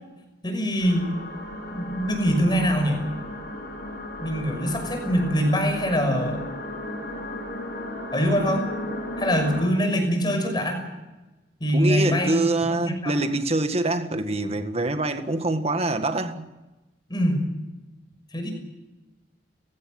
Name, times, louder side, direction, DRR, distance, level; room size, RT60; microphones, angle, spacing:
voice 1, 0.4-1.1 1.7-3.0 4.2-6.4 8.1-8.7 9.2-10.8 11.6-12.4 12.8-13.1 17.1-17.4 18.3-18.5, equal, 25° left, 6.2 m, -23 dB
sound 1, 0.8-9.7, left 1 dB, 60° left, 7.2 m, -35 dB
voice 2, 11.7-16.5, right 2 dB, 35° right, 1.8 m, -25 dB
29.5 x 16.5 x 7.8 m
head